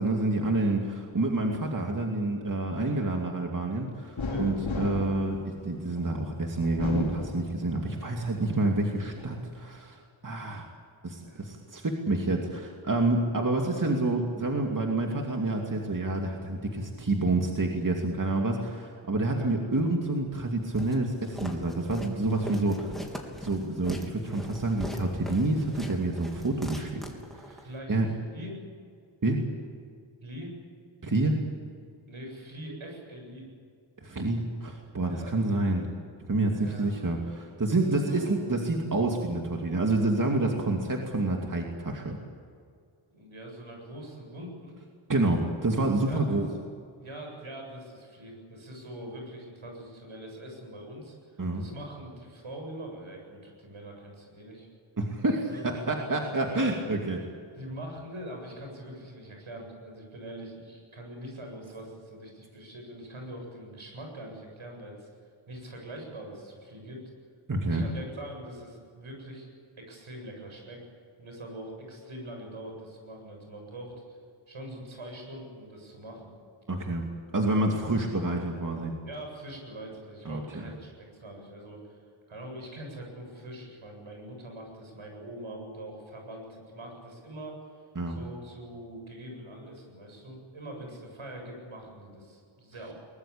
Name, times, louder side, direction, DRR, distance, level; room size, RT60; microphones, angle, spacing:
voice 1, 0.0-10.7 11.0-23.0 23.4-27.0 27.3-28.1 29.2-29.4 31.0-31.4 34.0-35.9 36.3-42.2 45.1-46.5 51.4-51.6 55.0-57.2 67.5-67.9 76.7-77.1 77.3-78.9 80.2-80.4 88.0-88.2, right 2 dB, 40° right, 1 dB, 2.6 m, -28 dB
sound 1, 4.2-6.1 6.6-8.0 8.4-9.3, left 3 dB, 70° left, 3.5 m, -35 dB
voice 2, 7.8-8.3 11.2-11.4 19.2-19.5 26.8-28.0 28.3-28.7 30.2-30.5 32.1-33.5 35.0-35.4 36.5-37.2 37.9-38.5 43.1-44.8 46.1-46.4 47.0-54.7 55.5-55.6 56.4-56.8 57.6-65.1 65.5-67.1 67.7-69.5 69.8-70.8 71.2-74.2 74.5-76.3 79.0-82.0 82.3-87.6 88.1-92.9, right 1 dB, 80° right, 1 dB, 8.0 m, -43 dB
Walk footsteps, 20.7-27.7, equal, ahead, 3.5 m, -41 dB
22.5 x 21.0 x 8.6 m, 2.2 s
wide cardioid pair, 85°, 48 cm